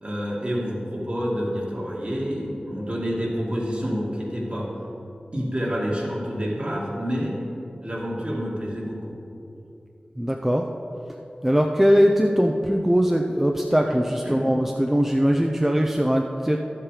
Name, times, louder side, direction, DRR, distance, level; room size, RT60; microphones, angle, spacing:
voice 1, 0.0-4.7 5.3-7.4 7.8-9.2 13.9-14.0 14.2-14.5, equal, 40° right, -4 dB, 2.3 m, -28 dB
voice 2, 10.2-10.7 11.4-16.6, equal, 10° right, 2 dB, 0.6 m, -21 dB
12.0 x 7.6 x 4.9 m, 2.9 s
wide cardioid pair, 75°, 3 cm